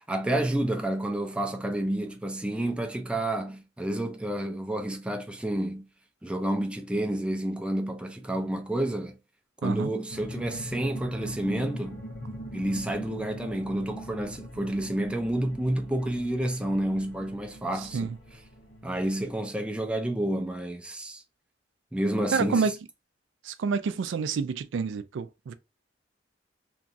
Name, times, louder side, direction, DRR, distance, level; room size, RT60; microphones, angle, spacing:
voice 1, 0.1-5.8 6.2-9.2 9.6-12.0 12.5-18.1 18.8-21.2 21.9-22.7, right 1 dB, 5° right, 0.3 m, -29 dB
sound 1, 10.1-19.3, equal, 85° left, 1.1 m, -42 dB
voice 2, 22.3-22.7 23.4-25.5, right 5 dB, 85° right, 0.4 m, -28 dB
3.0 x 2.4 x 2.6 m
head